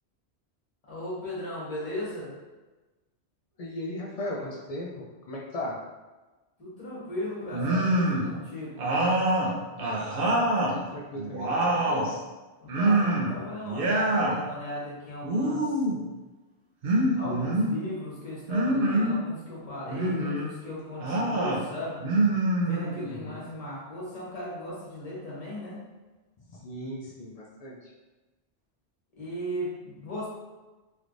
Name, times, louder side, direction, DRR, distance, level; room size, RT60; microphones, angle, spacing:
voice 1, 0.9-2.3 6.6-8.9 12.6-15.6 17.1-22.0 22.6-25.8 29.2-30.3, left 1 dB, 35° left, -6 dB, 1.1 m, -37 dB
voice 2, 3.6-5.8 9.8-10.4 10.7-12.2 23.0-23.5 26.5-27.9, left 1 dB, 80° left, -2 dB, 0.3 m, -38 dB
sound 1, 7.5-8.3 8.8-10.8 11.2-12.1 12.7-13.4 13.6-14.4 15.2-16.0 16.8-17.7 18.5-19.2 19.9-20.5 21.0-21.6 22.0-23.1, right 1 dB, 60° right, 0.7 m, -25 dB
3.2 x 3.1 x 2.5 m, 1.2 s
omnidirectional pair, 1.2 m